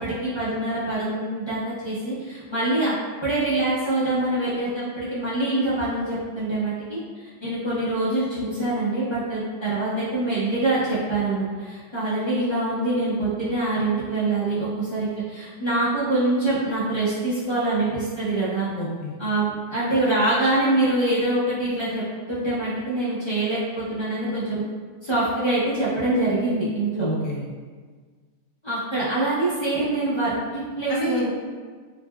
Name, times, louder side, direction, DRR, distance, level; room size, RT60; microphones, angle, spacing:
voice 1, 0.0-2.9 3.2-7.0 7.4-18.7 19.2-22.0 22.3-24.6 25.0-27.1 28.6-31.3, right 2 dB, 45° left, -12 dB, 0.3 m, -24 dB
voice 2, 18.8-19.1 27.0-27.5 30.9-31.3, equal, 75° left, -3 dB, 1.2 m, -28 dB
3.7 x 2.2 x 2.2 m, 1.5 s
omnidirectional pair, 1.8 m